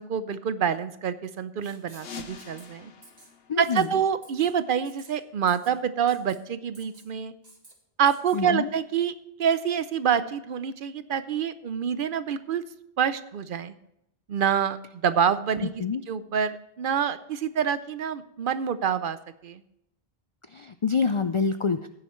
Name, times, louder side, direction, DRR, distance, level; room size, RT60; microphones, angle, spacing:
voice 1, 0.0-2.9 3.6-7.3 8.0-9.1 9.4-12.6 13.0-13.7 14.3-19.2 19.4-19.6, right 8 dB, 65° right, 13 dB, 0.7 m, -27 dB
Writing, 1.6-2.1 2.4-2.7 3.0-3.3 3.6-3.9 4.2-4.5 4.8-5.1 5.5-5.7 6.1-6.4 6.7-7.1 7.4-7.7 8.1-8.4, right 2 dB, 40° right, 1.9 m, -52 dB
sound 1, 1.9-4.5, left 5 dB, 75° left, 1.2 m, -45 dB
voice 2, 3.5-3.9 8.3-8.7 15.6-16.0 20.5-21.9, left 5 dB, 55° left, 10 dB, 0.3 m, -27 dB
15.0 x 10.0 x 3.1 m, 0.81 s
omnidirectional pair, 1.0 m